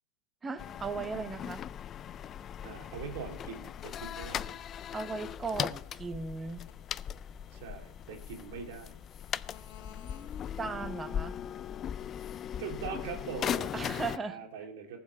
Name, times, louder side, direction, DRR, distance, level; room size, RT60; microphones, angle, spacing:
voice 1, 0.4-1.6 4.9-6.6 10.6-11.4 13.7-14.4, right 4 dB, 20° right, 11 dB, 1.0 m, -37 dB
sound 1, 0.6-14.2, left 9 dB, 30° left, 0.3 m, -39 dB
sound 2, 2.5-10.8, left 9 dB, 60° left, 1.1 m, -56 dB
voice 2, 2.6-4.6 7.5-9.0 12.6-15.0, right 6 dB, 70° right, 2 dB, 2.5 m, -42 dB
14.5 x 5.6 x 6.6 m, 0.76 s
hypercardioid pair, 115°, 0 cm